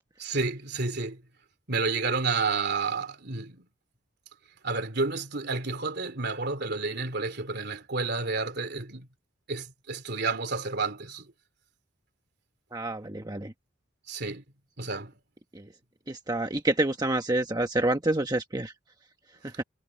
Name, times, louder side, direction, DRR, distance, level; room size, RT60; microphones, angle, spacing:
voice 1, 0.2-1.2 1.7-3.7 4.6-9.1 9.5-11.3 14.1-14.4 14.8-15.1, right 4 dB, 55° right, 3.2 m, -30 dB
voice 2, 12.7-13.5 15.5-15.7 16.1-18.7 19.4-19.6, right 2 dB, 20° right, 1.1 m, -28 dB
head